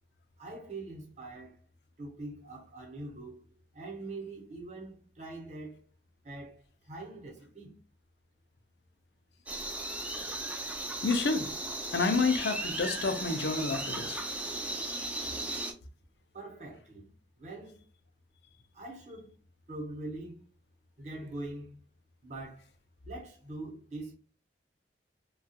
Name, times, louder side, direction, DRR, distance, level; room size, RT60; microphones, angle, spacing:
voice 1, 0.4-1.6 2.0-5.8 6.2-7.8 16.3-17.1 17.4-17.8 18.7-19.3 19.7-20.4 21.0-21.8 22.2-22.7 23.0-24.1, right 2 dB, 40° right, 0.8 m, -43 dB
sound 1, 9.5-15.7, right 2 dB, 10° right, 0.3 m, -36 dB
voice 2, 11.0-11.5 11.9-14.2, left 4 dB, 70° left, 0.5 m, -29 dB
2.8 x 2.3 x 2.7 m
head